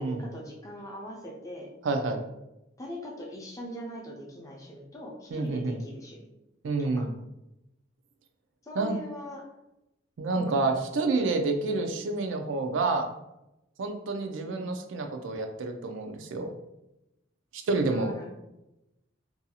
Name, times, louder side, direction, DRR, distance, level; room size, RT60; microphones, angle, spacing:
voice 1, 0.0-1.7 2.8-6.3 6.8-7.1 8.6-9.5 10.4-10.6 14.4-14.7 17.9-18.3, equal, 15° left, -2 dB, 0.5 m, -41 dB
voice 2, 1.8-2.2 5.3-5.8 6.6-7.1 8.8-9.0 10.2-13.1 13.8-16.5 17.5-18.1, right 3 dB, 90° right, 5 dB, 0.4 m, -28 dB
2.6 x 2.3 x 2.7 m, 0.91 s
head